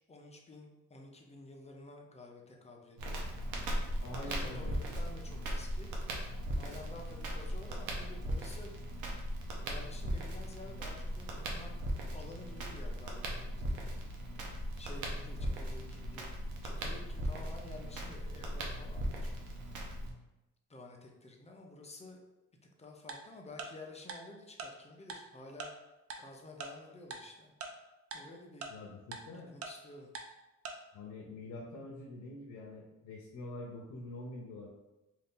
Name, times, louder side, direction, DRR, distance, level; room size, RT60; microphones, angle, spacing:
voice 1, 0.0-3.2 4.1-5.9 6.5-8.7 9.6-11.7 12.1-14.0 14.8-16.3 16.6-19.3 20.7-22.2 22.8-25.7 26.2-27.5 28.1-28.7 29.5-30.1, left 2 dB, 20° left, 1 dB, 0.6 m, -51 dB
Crackle, 3.0-20.1, equal, 85° right, 0.8 m, -38 dB
voice 2, 4.0-4.7 28.7-29.5 30.9-34.7, left 2 dB, 70° left, -2 dB, 0.7 m, -45 dB
Tick-tock, 23.1-23.2 23.6-23.7 24.1-24.2 24.6-24.7 25.1-25.2 25.6-25.7 26.1-26.2 26.6-26.7 27.1-27.2 27.6-27.7 28.1-28.2 28.6-28.7 29.1-29.2 29.6-29.7 30.1-30.2 30.6-30.7, right 4 dB, 50° right, 0.5 m, -41 dB
2.7 x 2.5 x 3.6 m, 0.99 s
cardioid pair, 90°, 30 cm